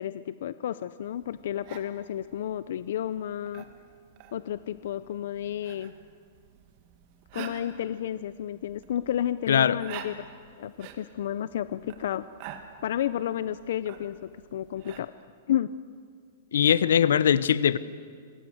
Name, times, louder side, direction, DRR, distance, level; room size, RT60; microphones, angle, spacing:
voice 1, 0.0-3.6 4.3-5.9 7.3-10.3 10.6-12.3 12.8-15.1 15.5-15.7, left 11 dB, 65° left, 15 dB, 0.6 m, -31 dB
sound 1, 1.0-15.0, right 9 dB, 35° right, 2.1 m, -48 dB
voice 2, 9.5-9.8 16.5-17.8, left 8 dB, 90° left, 17 dB, 0.9 m, -21 dB
27.0 x 21.0 x 8.0 m, 2.1 s
hypercardioid pair, 165°, 0 cm